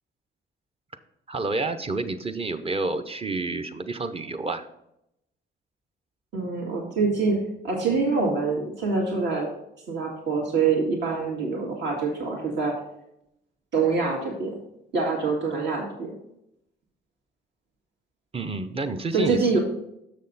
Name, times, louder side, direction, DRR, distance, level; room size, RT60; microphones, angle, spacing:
voice 1, 1.3-4.7 18.3-19.6, right 3 dB, 30° right, 8 dB, 0.7 m, -29 dB
voice 2, 6.3-7.4 7.6-9.5 9.9-12.7 13.7-14.6 14.9-16.1 19.1-19.6, right 4 dB, 65° right, -2 dB, 2.0 m, -25 dB
6.8 x 6.4 x 4.0 m, 0.80 s
cardioid pair, 90°, 20 cm